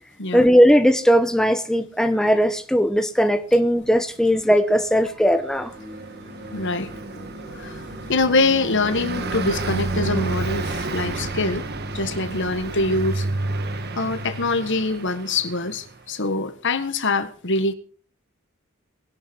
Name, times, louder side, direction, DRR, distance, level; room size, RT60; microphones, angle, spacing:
voice 1, 0.3-5.7, equal, 5° left, 8 dB, 0.9 m, -18 dB
Car passing by, 4.9-15.9, right 2 dB, 50° right, 1.4 m, -30 dB
sound 1, 5.8-14.6, left 1 dB, 20° left, 4.2 m, -44 dB
voice 2, 6.5-7.2 7.5-7.8 8.1-11.6 11.9-13.3 14.0-17.7, left 3 dB, 60° left, 11 dB, 1.6 m, -24 dB
20.0 x 11.5 x 4.7 m, 0.41 s
head